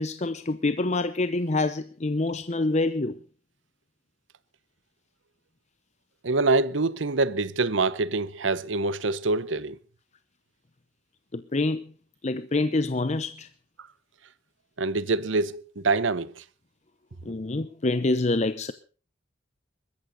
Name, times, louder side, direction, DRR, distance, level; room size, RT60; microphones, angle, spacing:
voice 1, 0.0-3.1 11.3-11.8 12.2-13.5 17.2-18.7, left 2 dB, 35° left, 0.7 m, -26 dB
voice 2, 6.2-9.8 14.8-16.4, right 3 dB, 90° right, 0.9 m, -25 dB
21.5 x 13.5 x 4.0 m
head